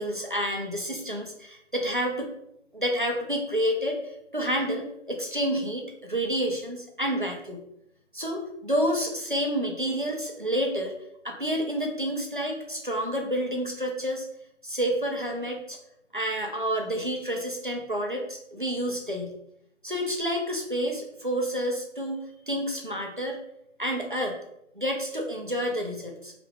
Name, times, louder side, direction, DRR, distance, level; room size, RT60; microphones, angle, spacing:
voice 1, 0.0-2.3 2.7-7.6 8.1-10.9 11.2-14.3 14.6-15.8 16.1-19.3 19.8-23.4 23.8-24.4 24.8-26.3, equal, 45° right, 1 dB, 0.5 m, -29 dB
2.9 x 2.5 x 3.3 m, 0.78 s
figure-of-eight pair, 170°, 37 cm